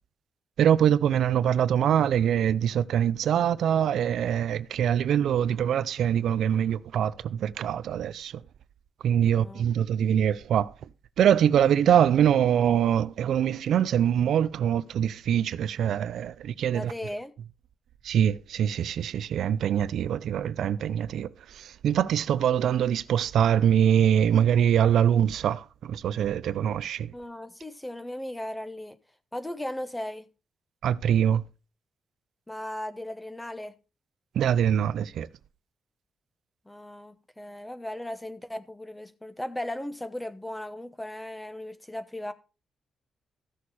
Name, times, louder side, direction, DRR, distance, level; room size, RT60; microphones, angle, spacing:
voice 1, 0.6-8.3 9.0-10.7 11.2-16.9 18.0-21.3 21.5-27.1 30.8-31.4 34.4-35.3, right 9 dB, 85° right, 0.5 m, -24 dB
voice 2, 9.3-9.7 16.7-17.3 27.1-29.0 29.3-30.3 32.5-33.7 36.6-42.3, left 1 dB, 10° left, 1.0 m, -37 dB
14.5 x 6.5 x 4.2 m
cardioid pair, 125°, 0 cm